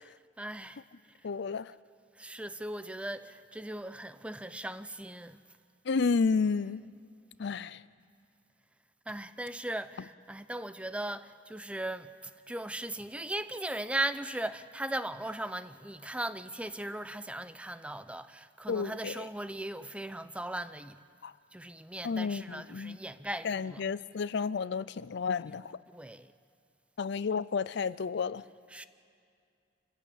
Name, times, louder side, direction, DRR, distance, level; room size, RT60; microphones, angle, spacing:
voice 1, 0.4-0.8 2.2-5.4 9.1-12.1 12.5-21.0 21.5-23.8 25.9-26.3 28.7-28.8, right 1 dB, 5° right, 0.6 m, -38 dB
voice 2, 1.2-1.7 5.9-6.8 7.4-7.8 18.7-19.3 21.2-21.3 22.0-23.0 23.4-25.8 27.0-28.4, left 5 dB, 65° left, 0.5 m, -31 dB
28.0 x 15.0 x 8.6 m
head